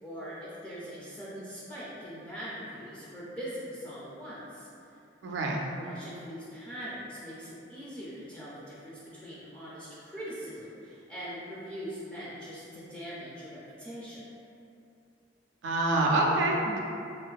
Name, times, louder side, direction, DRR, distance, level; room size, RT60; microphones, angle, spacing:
voice 1, 0.0-5.0 5.7-14.2, equal, 5° left, -9 dB, 0.3 m, -42 dB
voice 2, 5.2-5.6 15.6-16.8, right 2 dB, 75° right, -1 dB, 0.3 m, -26 dB
2.5 x 2.4 x 2.2 m, 2.6 s
head